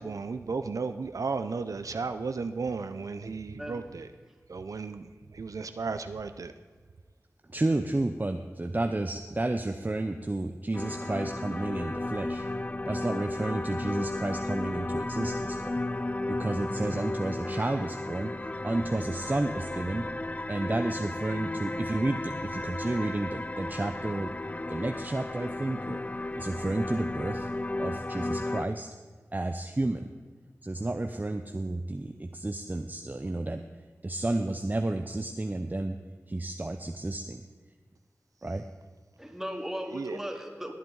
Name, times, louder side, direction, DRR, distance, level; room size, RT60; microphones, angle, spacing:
voice 1, 0.0-4.1 4.5-5.1 5.3-6.5 39.9-40.2, right 4 dB, 80° right, 9 dB, 0.5 m, -34 dB
voice 2, 3.6-3.9 4.3-4.4 39.2-40.7, equal, 5° right, 2 dB, 2.1 m, -37 dB
voice 3, 7.5-12.5 12.9-15.7 16.4-20.1 20.5-24.3 24.7-26.0 26.4-27.5 27.8-28.9 29.3-30.1 30.6-33.6 34.0-36.0 36.3-37.4 38.4-38.6, right 2 dB, 30° right, 6 dB, 0.6 m, -31 dB
sound 1, 10.7-28.7, left 2 dB, 25° left, 0.4 m, -34 dB
18.0 x 8.7 x 3.9 m, 1.5 s
wide cardioid pair, 45°, 6 cm